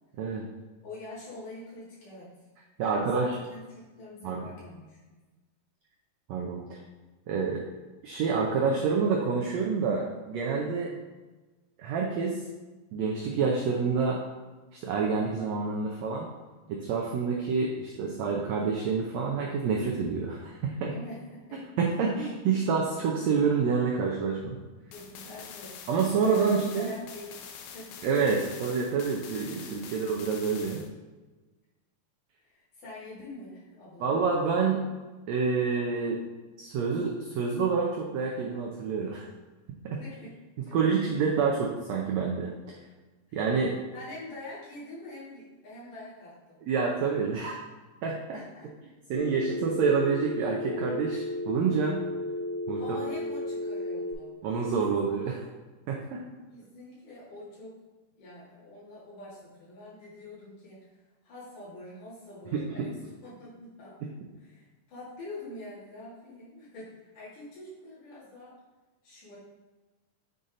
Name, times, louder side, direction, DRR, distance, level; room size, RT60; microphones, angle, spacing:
voice 1, 0.8-2.3 2.8-5.2 20.9-21.6 24.9-25.9 26.2-28.0 32.4-34.3 40.0-40.3 40.7-40.8 43.3-43.4 43.9-46.6 48.3-48.7 52.8-54.4 54.7-55.4 56.5-57.8 58.2-61.0 61.2-63.0 63.2-64.0 64.4-68.5 69.0-69.4, left 1 dB, 65° left, -9 dB, 4.0 m, -45 dB
voice 2, 2.8-3.4 4.2-4.4 6.3-6.8 7.3-7.6 8.0-10.9 11.8-12.3 12.9-14.2 14.7-16.3 16.7-20.9 21.8-24.6 25.9-26.9 28.0-30.8 34.0-34.8 35.3-36.2 36.6-39.3 39.8-40.0 40.7-42.5 43.3-43.7 46.7-47.5 48.0-48.4 49.1-52.0 52.7-53.0 54.4-55.4 55.9-56.2 62.5-62.6, right 5 dB, 85° right, -1 dB, 1.5 m, -28 dB
sound 1, 24.9-30.9, left 7 dB, 90° left, 2.5 m, -45 dB
Telephone, 49.1-54.1, left 1 dB, 20° left, 0.7 m, -33 dB
8.1 x 4.0 x 3.8 m, 1.2 s
omnidirectional pair, 4.0 m